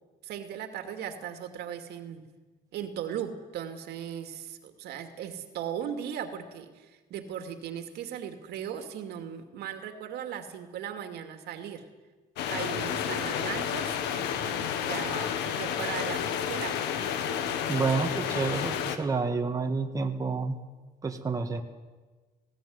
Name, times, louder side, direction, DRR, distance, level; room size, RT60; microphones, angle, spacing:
voice 1, 0.2-2.2 2.7-11.8 12.5-16.8, right 9 dB, 75° right, 6 dB, 2.5 m, -38 dB
sound 1, 12.4-19.0, left 8 dB, 90° left, 1.7 m, -31 dB
voice 2, 17.7-20.6 21.0-21.6, right 4 dB, 20° right, 4 dB, 1.8 m, -29 dB
19.5 x 16.5 x 9.6 m, 1.3 s
cardioid pair, 110°, 17 cm